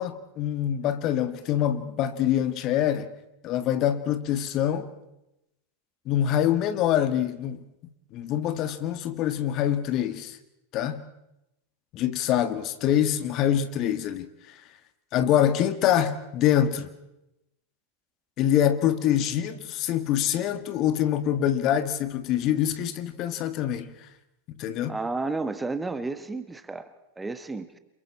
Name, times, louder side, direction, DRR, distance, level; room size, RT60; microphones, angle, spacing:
voice 1, 0.0-3.1 3.4-4.9 6.1-7.6 8.1-10.4 10.7-11.1 11.9-14.6 15.1-16.9 18.4-23.9 24.6-25.0, left 10 dB, 35° left, 1.6 m, -25 dB
voice 2, 24.9-27.8, right 3 dB, 10° right, 1.4 m, -32 dB
29.5 x 27.5 x 4.3 m
figure-of-eight pair, 90°, 0 cm